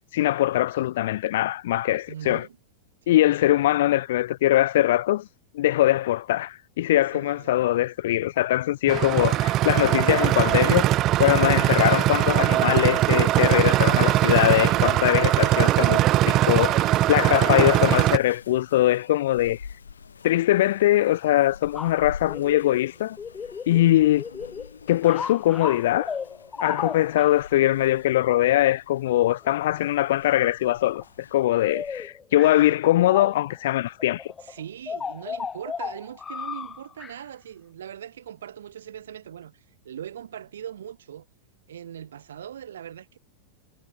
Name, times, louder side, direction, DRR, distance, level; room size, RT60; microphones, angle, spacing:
voice 1, 0.1-2.5 3.1-5.3 5.5-16.0 16.3-19.6 20.2-23.2 23.7-24.2 24.9-26.2 26.6-34.3, left 14 dB, 55° left, 0.6 m, -22 dB
voice 2, 2.1-2.6 3.0-3.4 7.1-7.5 14.5-17.3 23.8-24.1 34.4-41.3 41.7-43.2, right 10 dB, 65° right, 4.4 m, -41 dB
sound 1, 8.9-18.2, right 15 dB, 35° right, 0.7 m, -21 dB
sound 2, 12.2-32.1, left 6 dB, 70° left, 7.9 m, -47 dB
sound 3, 21.8-22.8 23.2-23.9 24.2-24.7 25.0-27.4 29.2-29.8 30.3-30.5 30.9-31.0 31.5-33.6 34.0-37.2, left 6 dB, 20° left, 2.4 m, -35 dB
figure-of-eight pair, 90°, 0 cm